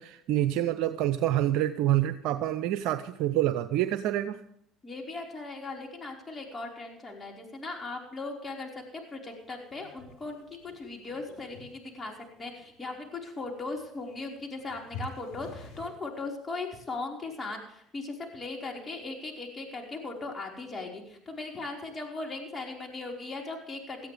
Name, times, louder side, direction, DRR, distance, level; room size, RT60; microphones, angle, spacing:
voice 1, 0.0-4.4, right 13 dB, 70° right, 10 dB, 0.7 m, -27 dB
voice 2, 4.8-12.1 12.4-24.1, left 3 dB, 25° left, 1 dB, 4.9 m, -38 dB
sound 1, 9.4-15.9, left 2 dB, 75° left, 4.3 m, -48 dB
18.5 x 14.0 x 3.5 m, 0.72 s
supercardioid pair, 75°, 0 cm